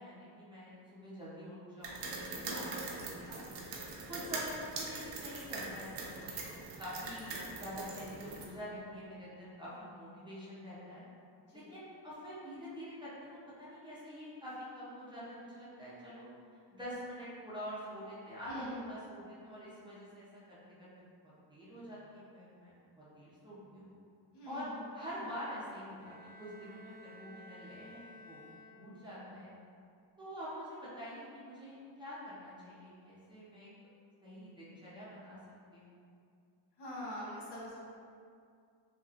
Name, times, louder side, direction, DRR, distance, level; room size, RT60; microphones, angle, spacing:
voice 1, 0.0-3.5 4.1-6.3 6.8-11.0 11.5-16.3 16.7-23.9 24.5-24.6 24.9-28.4 28.7-29.5 30.2-33.7 34.2-35.4 35.7-36.0, equal, 10° right, -11 dB, 0.6 m, -46 dB
sound 1, 1.8-8.5, right 3 dB, 75° right, 0.6 m, -42 dB
voice 2, 24.3-24.7 36.8-37.8, left 1 dB, 65° left, -6 dB, 0.9 m, -44 dB
Bowed string instrument, 26.0-29.2, equal, 40° left, 0.6 m, -54 dB
2.9 x 2.8 x 2.5 m, 2.4 s
cardioid pair, 135°, 44 cm